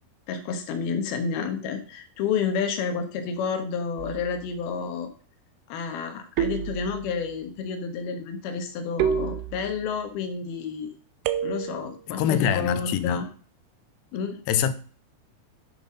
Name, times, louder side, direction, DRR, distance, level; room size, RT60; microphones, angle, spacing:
voice 1, 0.3-5.1 5.7-10.9 11.4-13.3 14.1-14.4, left 6 dB, 75° left, 3.3 m, -30 dB
sound 1, 4.0-4.5 6.4-7.3 9.0-9.9 11.3-12.0, right 9 dB, 85° right, 2.9 m, -29 dB
voice 2, 12.2-13.3 14.5-14.7, left 9 dB, 90° left, 2.9 m, -24 dB
10.5 x 7.1 x 5.3 m
omnidirectional pair, 4.6 m